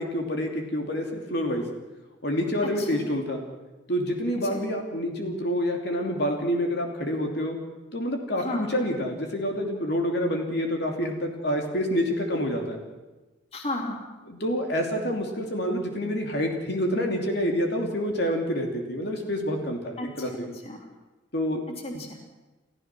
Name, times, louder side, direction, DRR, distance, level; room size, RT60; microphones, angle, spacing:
voice 1, 0.0-1.6 2.2-3.4 3.9-7.6 7.9-12.8 14.3-20.5 21.3-21.6, equal, 55° left, 2 dB, 3.0 m, -27 dB
voice 2, 2.6-3.1 4.4-4.6 8.4-8.7 13.5-14.0 20.0-20.9 21.7-22.2, left 1 dB, 30° left, 2 dB, 2.9 m, -34 dB
30.0 x 14.5 x 6.2 m, 1.1 s
head